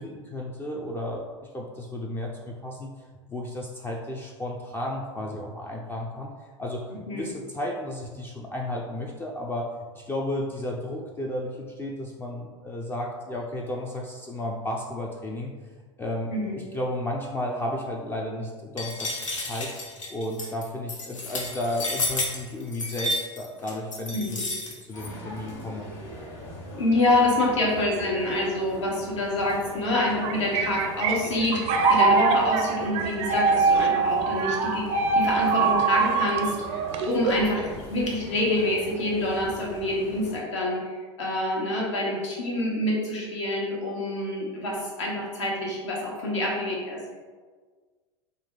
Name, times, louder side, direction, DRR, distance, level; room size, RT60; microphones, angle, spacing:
voice 1, 0.0-2.9 3.3-6.3 6.6-9.7 9.9-15.5 16.0-19.1 19.4-19.7 20.1-24.4 24.8-25.9, left 1 dB, 15° left, -1 dB, 0.4 m, -33 dB
sound 1, 18.8-25.1, left 2 dB, 90° left, 0.7 m, -31 dB
voice 2, 24.1-24.4 26.7-47.1, left 1 dB, 70° left, -4 dB, 1.2 m, -27 dB
sound 2, 24.9-40.4, equal, 40° left, 1.4 m, -42 dB
sound 3, 30.0-37.5, right 4 dB, 45° right, 0.5 m, -23 dB
3.9 x 2.3 x 3.6 m, 1.5 s
hypercardioid pair, 85°, 16 cm